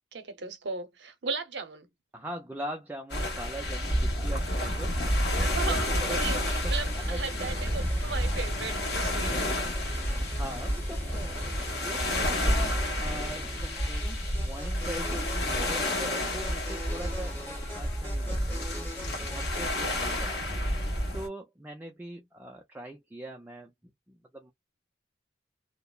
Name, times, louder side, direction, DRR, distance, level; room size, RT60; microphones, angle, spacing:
voice 1, 0.1-1.9 5.4-9.4, right 4 dB, 70° right, 0.7 m, -36 dB
voice 2, 2.1-6.2 6.6-6.7 7.1-7.3 9.9-20.6 21.1-23.7 24.1-24.5, right 1 dB, 10° right, 0.3 m, -42 dB
sound 1, 3.1-21.3, left 1 dB, 65° left, 1.2 m, -30 dB
sound 2, 4.2-6.5 7.6-10.0 11.0-13.3 13.9-16.2, equal, 35° left, 1.0 m, -39 dB
sound 3, 6.1-19.6, equal, 10° left, 0.8 m, -42 dB
2.8 x 2.0 x 2.3 m
head